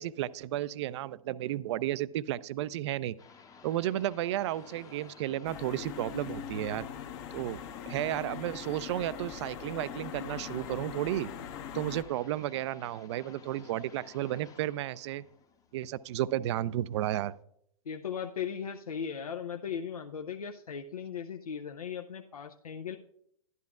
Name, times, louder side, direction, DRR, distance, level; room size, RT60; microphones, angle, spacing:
voice 1, 0.0-3.2 3.6-6.9 7.3-7.6 7.9-11.3 11.7-15.2 15.7-17.3, right 13 dB, 50° right, 18 dB, 0.4 m, -33 dB
sound 1, 3.2-16.6, left 5 dB, 20° left, 0.7 m, -55 dB
sound 2, 4.3-5.3 6.1-7.0 7.7-8.7, left 7 dB, 65° left, 1.4 m, -58 dB
sound 3, 5.4-12.0, left 8 dB, 50° left, 0.9 m, -41 dB
voice 2, 17.9-23.0, left 7 dB, 80° left, 4 dB, 0.5 m, -37 dB
11.5 x 10.5 x 2.4 m, 0.72 s
figure-of-eight pair, 105°, 19 cm